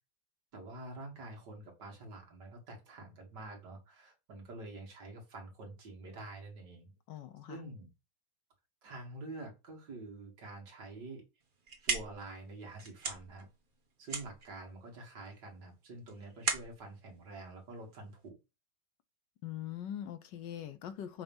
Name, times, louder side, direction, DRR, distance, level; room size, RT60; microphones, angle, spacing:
voice 1, 0.5-6.9 7.5-7.9 8.8-11.2 11.8-13.5 14.0-18.4, right 2 dB, 65° right, 2.5 m, -47 dB
voice 2, 7.1-7.6 19.4-21.2, left 10 dB, 75° left, 1.4 m, -42 dB
sound 1, 11.4-18.3, right 4 dB, 35° right, 1.0 m, -40 dB
6.8 x 2.9 x 5.4 m
omnidirectional pair, 2.0 m